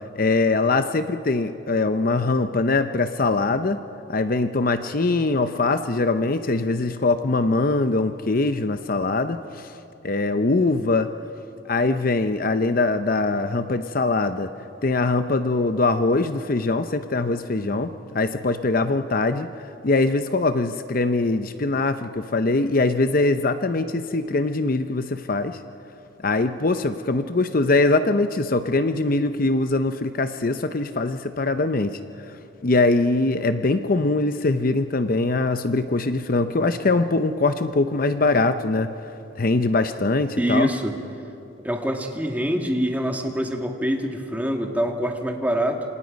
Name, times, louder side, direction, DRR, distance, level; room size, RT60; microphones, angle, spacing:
voice 1, 0.1-3.8 4.1-9.7 10.0-11.1 11.7-14.5 14.8-19.5 19.8-25.6 26.2-32.0 32.6-38.9 39.4-40.7, left 3 dB, 45° left, 10 dB, 0.7 m, -22 dB
voice 2, 40.4-40.9 41.6-45.8, equal, 10° right, 3 dB, 1.9 m, -25 dB
28.0 x 26.5 x 5.3 m, 2.9 s
head